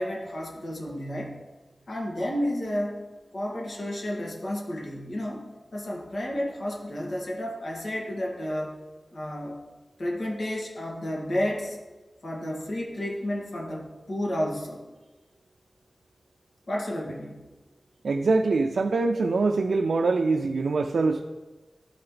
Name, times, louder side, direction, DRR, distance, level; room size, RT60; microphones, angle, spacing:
voice 1, 0.0-1.4 1.9-3.0 3.3-5.4 5.7-8.8 9.1-9.6 10.0-11.8 12.2-14.8 16.7-17.4, left 1 dB, 70° left, -2 dB, 1.9 m, -31 dB
voice 2, 18.0-21.2, right 3 dB, 90° right, 4 dB, 0.4 m, -24 dB
12.5 x 4.4 x 3.9 m, 1.2 s
wide cardioid pair, 80°, 0 cm